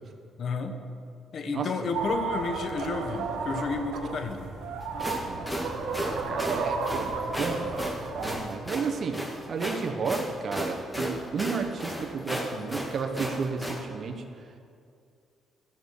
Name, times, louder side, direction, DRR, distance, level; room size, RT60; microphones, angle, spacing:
voice 1, 0.4-0.7 1.3-4.5, left 4 dB, 55° left, 6 dB, 1.2 m, -31 dB
sound 1, 1.9-8.4, right 4 dB, 90° right, 1.4 m, -33 dB
sound 2, 4.8-13.8, equal, 10° left, 1.8 m, -34 dB
voice 2, 6.0-7.1 7.4-9.2 9.5-14.2, right 5 dB, 55° right, 4 dB, 1.2 m, -32 dB
14.0 x 7.3 x 6.4 m, 2.4 s
cardioid pair, 90°, 0 cm